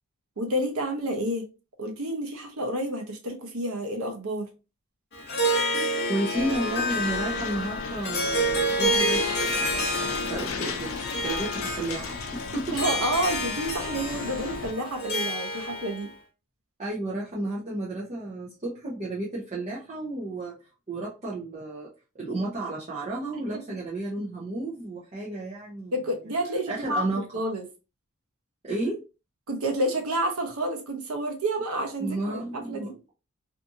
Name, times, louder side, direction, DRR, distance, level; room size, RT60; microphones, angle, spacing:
voice 1, 0.4-1.5 1.8-4.5 12.7-16.1 23.3-23.6 25.9-27.7 29.5-33.0, right 1 dB, 75° right, 0.8 m, -29 dB
Harp, 5.1-16.1, equal, 45° left, 0.8 m, -29 dB
voice 2, 6.1-12.8 15.5-15.6 16.8-20.6 20.9-21.9 22.2-25.9 26.7-27.2 28.6-29.0 32.0-32.9, right 2 dB, 30° right, 0.7 m, -32 dB
sound 1, 6.3-14.7, left 5 dB, 65° left, 0.4 m, -37 dB
2.7 x 2.5 x 2.5 m
head